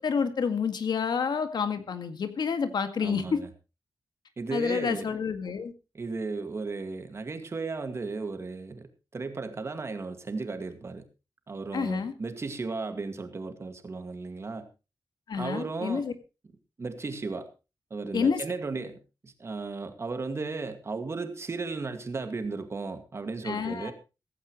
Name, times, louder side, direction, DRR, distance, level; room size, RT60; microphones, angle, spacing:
voice 1, 0.0-3.4 4.5-5.7 11.7-12.1 15.3-16.1 18.1-18.4 23.4-23.9, left 6 dB, 75° left, 9 dB, 1.9 m, -28 dB
voice 2, 3.0-3.5 4.4-5.1 5.9-11.0 11.5-14.7 15.4-16.0 16.8-17.5 17.9-19.0 19.2-23.9, right 3 dB, 35° right, 8 dB, 2.1 m, -35 dB
16.0 x 15.0 x 3.1 m, 0.29 s
wide cardioid pair, 165°, 7 cm